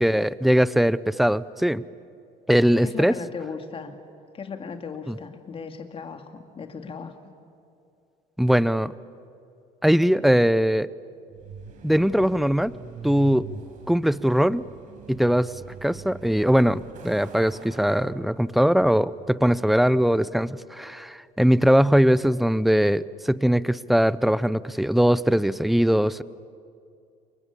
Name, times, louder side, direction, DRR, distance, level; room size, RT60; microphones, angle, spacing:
voice 1, 0.0-1.8 2.5-3.1 5.1-5.2 8.4-8.9 9.8-10.9 11.8-12.7 13.0-13.5 13.9-14.6 15.1-15.5 15.8-26.2, equal, ahead, 18 dB, 0.6 m, -21 dB
voice 2, 2.8-3.9 4.3-7.2, left 5 dB, 35° left, 6 dB, 2.5 m, -37 dB
Truck, 11.3-20.0, right 5 dB, 55° right, 4.5 m, -44 dB
28.5 x 23.5 x 8.4 m, 2.6 s
cardioid pair, 105°, 16 cm